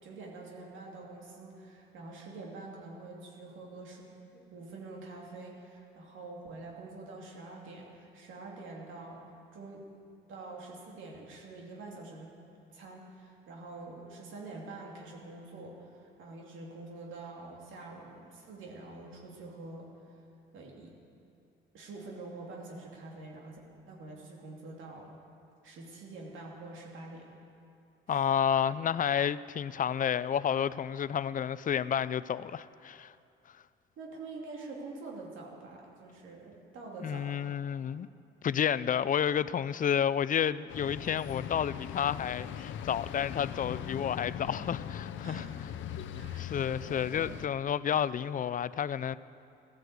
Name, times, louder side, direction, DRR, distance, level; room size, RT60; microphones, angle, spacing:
voice 1, 0.0-9.2 9.5-9.9 10.3-12.3 12.7-19.9 20.5-20.9 21.7-23.6 23.9-25.1 25.6-27.2 28.1-28.3 34.0-37.4 45.2-45.6 46.1-47.4, right 3 dB, 80° right, 2.7 m, -46 dB
voice 2, 28.1-33.1 37.0-38.1 38.4-45.5 46.4-49.2, left 8 dB, 40° left, 0.5 m, -30 dB
sound 1, 40.7-47.5, left 9 dB, 75° left, 0.7 m, -40 dB
15.5 x 11.0 x 8.1 m
cardioid pair, 90°, 20 cm